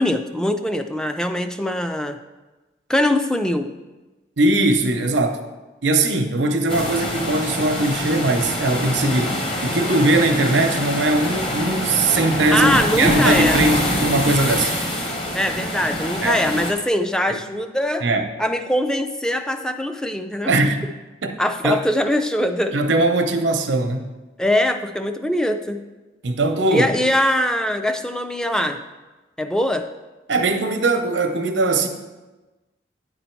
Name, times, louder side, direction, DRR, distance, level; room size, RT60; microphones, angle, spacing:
voice 1, 0.0-2.2 2.9-3.7 12.5-13.6 15.3-18.1 18.4-20.5 21.4-22.8 24.4-25.8 26.7-28.8 29.4-29.9, left 1 dB, 5° left, 7 dB, 0.3 m, -22 dB
voice 2, 4.4-5.4 5.8-14.7 16.2-16.4 17.3-17.4 18.0-18.3 20.5-20.9 21.2-21.4 21.6-21.8 22.7-24.1 26.2-26.9 30.3-31.9, right 2 dB, 90° right, 6 dB, 0.7 m, -20 dB
sound 1, 6.7-16.7, equal, 30° left, 1.0 m, -24 dB
9.6 x 4.0 x 4.5 m, 1.2 s
head